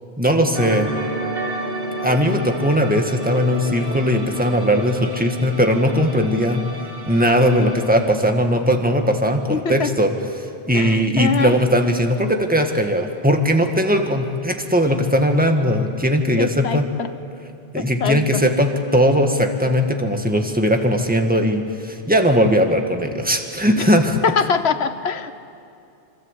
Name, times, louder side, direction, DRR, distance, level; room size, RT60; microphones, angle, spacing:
voice 1, 0.2-0.9 2.0-6.6 7.1-16.9 17.7-24.2, equal, 10° right, 4 dB, 1.9 m, -19 dB
sound 1, 0.5-9.2 9.5-9.7, right 2 dB, 65° right, 2.4 m, -31 dB
voice 2, 9.5-9.9 10.7-11.5 16.4-17.1 17.7-18.5 23.8-23.9 24.2-25.3, left 6 dB, 90° left, 11 dB, 1.4 m, -23 dB
26.0 x 26.0 x 8.4 m, 2.5 s
omnidirectional pair, 1.1 m